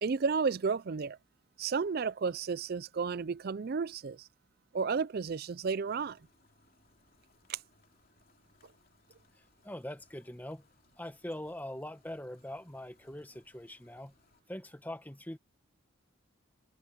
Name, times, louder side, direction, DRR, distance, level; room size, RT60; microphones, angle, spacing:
voice 1, 0.0-1.2 1.6-4.3 4.7-6.2 7.5-7.6, right 5 dB, 45° right, 0.4 m, -32 dB
sound 1, 5.8-14.4, left 3 dB, 45° left, 3.0 m, -69 dB
voice 2, 9.4-10.7 11.0-14.1 14.5-15.4, left 1 dB, 10° left, 1.4 m, -43 dB
head